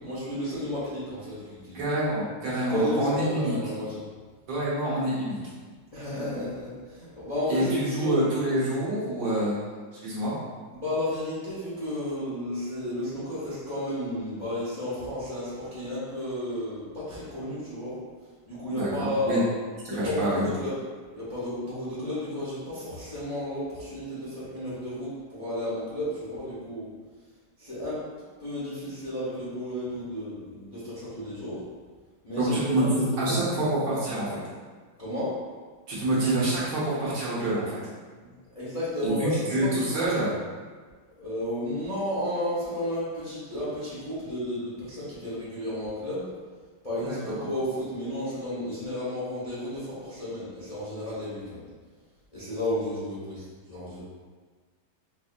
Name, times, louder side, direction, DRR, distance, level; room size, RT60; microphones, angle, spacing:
voice 1, 0.0-1.8 2.7-4.0 5.9-8.2 10.7-18.0 18.4-19.5 19.9-20.8 21.1-26.9 27.6-28.1 28.4-31.6 32.2-33.4 35.0-35.4 38.2-40.2 41.2-46.3 46.8-51.6 52.3-54.0, left 1 dB, 25° left, -11 dB, 0.9 m, -32 dB
voice 2, 1.7-3.5 4.5-5.4 7.5-9.6 10.0-10.3 18.7-19.4 19.9-20.5 32.4-34.4 35.9-37.7 39.0-40.3 47.1-47.4, right 1 dB, 65° right, -9 dB, 1.6 m, -27 dB
4.9 x 2.7 x 2.4 m, 1.5 s
omnidirectional pair, 2.2 m